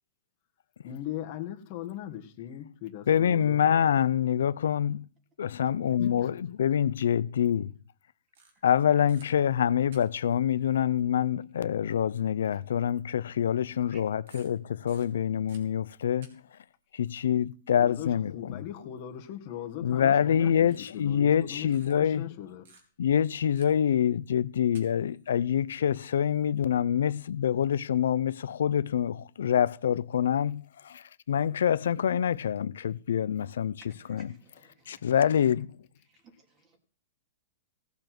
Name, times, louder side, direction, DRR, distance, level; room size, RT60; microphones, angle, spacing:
voice 1, 0.8-3.7 6.0-6.3 17.8-20.7 20.9-22.7, left 12 dB, 45° left, 1.5 m, -39 dB
voice 2, 3.1-5.1 5.4-7.7 8.6-16.4 16.9-18.6 19.8-22.3 23.0-33.8 34.1-34.3 34.9-35.7, left 9 dB, 80° left, 0.6 m, -26 dB
sound 1, 8.3-8.8 9.1-9.3 9.9-10.4 11.5-11.6 12.2-12.3 13.6-13.9 14.3-16.3 16.5-16.7 19.6-19.9 20.7-21.4 21.7-21.9 22.6-23.1 23.5-23.9 24.6-25.3 26.9-27.0 27.5-27.8, right 4 dB, 70° right, 4.1 m, -57 dB
voice 3, 33.9-35.3 36.0-36.8, right 4 dB, 25° right, 3.3 m, -59 dB
16.5 x 7.1 x 6.0 m
hypercardioid pair, 145°, 0 cm